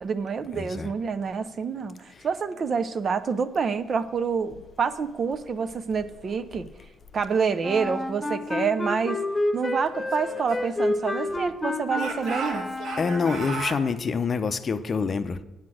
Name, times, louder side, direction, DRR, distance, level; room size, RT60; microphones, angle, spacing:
voice 1, 0.0-6.7 7.1-9.2 9.5-12.7, right 5 dB, 50° right, 0.6 m, -27 dB
voice 2, 0.5-0.9 13.0-15.4, left 5 dB, 40° left, 0.5 m, -26 dB
Wind instrument woodwind instrument, 7.6-13.6, left 2 dB, 15° left, 1.2 m, -29 dB
Speech / Shout, 9.9-11.5 11.9-13.8, right 4 dB, 80° right, 1.4 m, -36 dB
8.7 x 5.9 x 6.2 m
cardioid pair, 90°, 0 cm